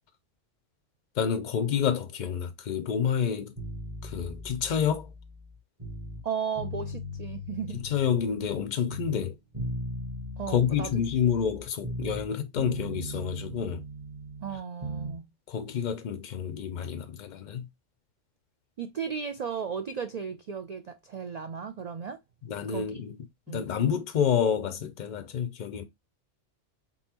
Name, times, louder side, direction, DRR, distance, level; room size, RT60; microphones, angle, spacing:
voice 1, 1.2-3.5 4.0-5.1 7.8-9.4 10.5-13.8 15.5-17.7 22.5-23.2 23.5-25.8, left 7 dB, 55° left, 0.5 m, -28 dB
sound 1, 3.6-6.2 6.6-8.6 8.9-12.3 12.6-15.2, left 1 dB, 30° right, 1.2 m, -38 dB
voice 2, 6.2-7.8 10.4-11.0 14.4-15.3 18.8-22.2 22.7-22.9 23.5-23.7, right 7 dB, 70° right, 0.4 m, -35 dB
3.9 x 3.6 x 2.8 m
omnidirectional pair, 1.3 m